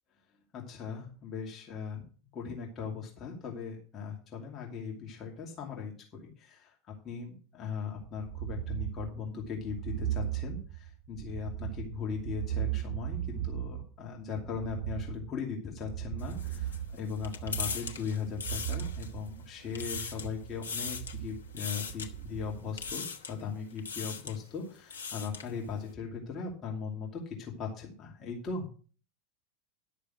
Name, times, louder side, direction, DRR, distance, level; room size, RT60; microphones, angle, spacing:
voice 1, 0.5-2.0 2.3-28.6, left 6 dB, 30° left, -1 dB, 2.6 m, -39 dB
sound 1, 7.9-22.9, right 12 dB, 50° right, 4.2 m, -38 dB
sound 2, 16.2-19.3 19.6-20.3 20.6-21.2 21.6-22.1 22.8-23.4 23.8-24.4 24.8-25.5, left 5 dB, 75° left, 1.2 m, -39 dB
11.0 x 6.7 x 6.1 m, 0.40 s
figure-of-eight pair, 85°, 0 cm